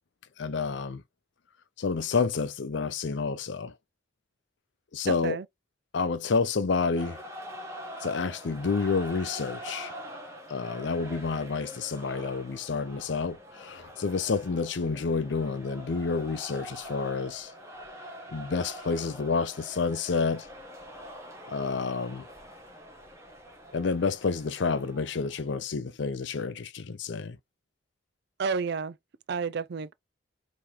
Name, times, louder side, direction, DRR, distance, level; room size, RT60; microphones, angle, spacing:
voice 1, 0.4-1.0 1.8-3.7 4.9-5.4 5.9-7.2 8.0-9.9 10.5-17.5 18.3-20.5 21.5-22.2 23.7-27.4, left 4 dB, 65° left, 0.5 m, -29 dB
voice 2, 5.0-5.5 28.4-29.0 29.3-29.9, right 5 dB, 55° right, 0.4 m, -30 dB
sound 1, 6.9-25.5, equal, 15° right, 1.2 m, -44 dB
3.6 x 2.9 x 4.5 m
head